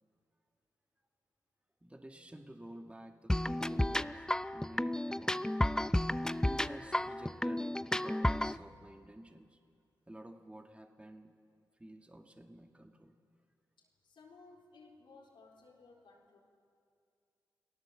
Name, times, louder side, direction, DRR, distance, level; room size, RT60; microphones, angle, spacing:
voice 1, 1.8-5.6 6.4-9.6 10.1-11.3 11.8-13.2, right 1 dB, 15° right, 4 dB, 1.9 m, -51 dB
sound 1, 3.3-8.6, left 1 dB, 10° left, 0.5 m, -32 dB
voice 2, 13.8-16.4, left 3 dB, 80° left, -3 dB, 4.1 m, -59 dB
29.5 x 18.5 x 7.7 m, 2.4 s
cardioid pair, 60°, 8 cm